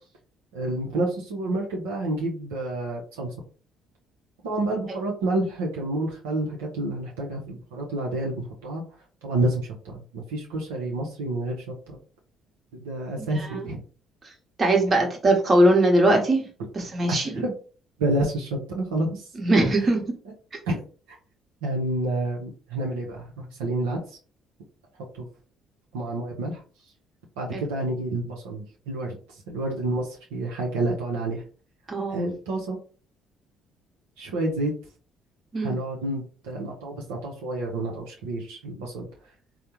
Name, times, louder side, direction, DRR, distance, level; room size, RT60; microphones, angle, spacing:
voice 1, 0.5-3.3 4.4-8.8 9.2-12.0 12.7-13.8 17.1-17.5 18.0-19.2 20.7-20.8 21.6-24.0 25.1-25.3 25.9-26.6 27.4-29.1 29.5-31.4 32.1-32.8 34.2-34.7 35.6-39.1, right 2 dB, 85° right, -2 dB, 0.6 m, -29 dB
voice 2, 13.2-13.7 14.6-16.5 16.7-17.4 19.3-20.0 27.5-27.6 31.9-32.3 35.5-35.8, right 1 dB, 40° right, 2 dB, 1.0 m, -21 dB
3.4 x 2.0 x 2.8 m, 0.38 s
hypercardioid pair, 55°, 0 cm